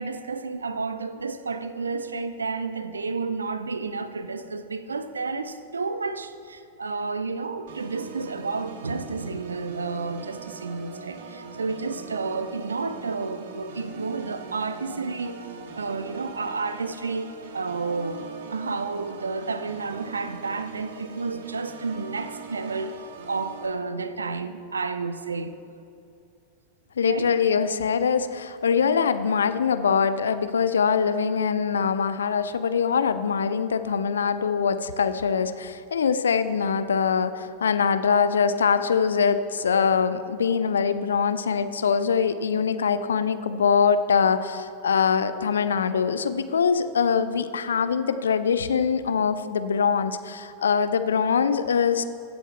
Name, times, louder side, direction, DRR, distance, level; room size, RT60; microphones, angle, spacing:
voice 1, 0.0-15.4 15.8-23.0 23.3-25.6 27.0-27.3, right 4 dB, 75° right, 0.5 m, -31 dB
Organ, 7.7-23.7, right 5 dB, 55° right, 1.0 m, -41 dB
voice 2, 27.0-52.0, left 6 dB, 70° left, 0.5 m, -23 dB
15.5 x 7.2 x 4.3 m
figure-of-eight pair, 90°, 0 cm